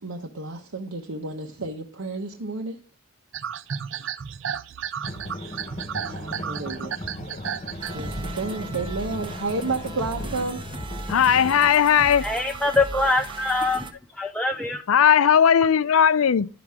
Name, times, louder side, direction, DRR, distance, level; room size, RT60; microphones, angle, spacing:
voice 1, 0.0-2.8 6.0-6.9 7.9-10.6, right 3 dB, 85° right, 1.0 m, -31 dB
sound 1, 3.3-10.1 10.5-11.5 11.9-13.3, right 7 dB, 60° right, 0.5 m, -35 dB
sound 2, 5.0-11.7, left 2 dB, 30° left, 1.0 m, -37 dB
sound 3, 7.8-13.9, right 2 dB, 25° right, 0.9 m, -37 dB
voice 2, 11.1-12.3 14.9-16.5, left 8 dB, 75° left, 0.4 m, -17 dB
voice 3, 12.2-13.9 14.2-14.8, left 2 dB, 5° left, 0.4 m, -23 dB
11.5 x 6.0 x 3.6 m
head